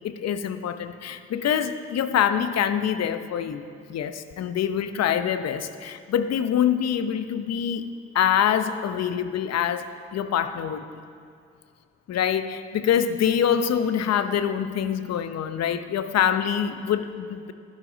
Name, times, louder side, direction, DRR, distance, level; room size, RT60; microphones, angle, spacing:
voice 1, 0.0-7.9 8.1-10.8 12.1-17.5, left 9 dB, 55° left, 11 dB, 0.9 m, -25 dB
16.0 x 11.5 x 4.0 m, 2.3 s
hypercardioid pair, 50°, 31 cm